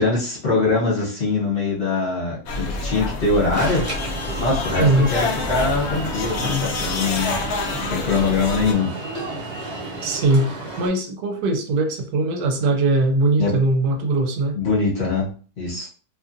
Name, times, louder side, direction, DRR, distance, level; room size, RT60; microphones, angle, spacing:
voice 1, 0.0-3.8 4.4-7.3 7.9-8.9 13.4-13.5 14.5-15.3 15.6-15.9, left 3 dB, 45° left, -6 dB, 1.3 m, -22 dB
sound 1, 2.5-8.7, left 3 dB, 70° left, 0.6 m, -27 dB
Alarm, 3.5-10.9, right 2 dB, 35° right, 0.7 m, -32 dB
voice 2, 4.8-5.1 10.0-14.5, right 2 dB, 80° right, 4 dB, 1.1 m, -20 dB
2.7 x 2.4 x 2.5 m, 0.41 s
omnidirectional pair, 1.7 m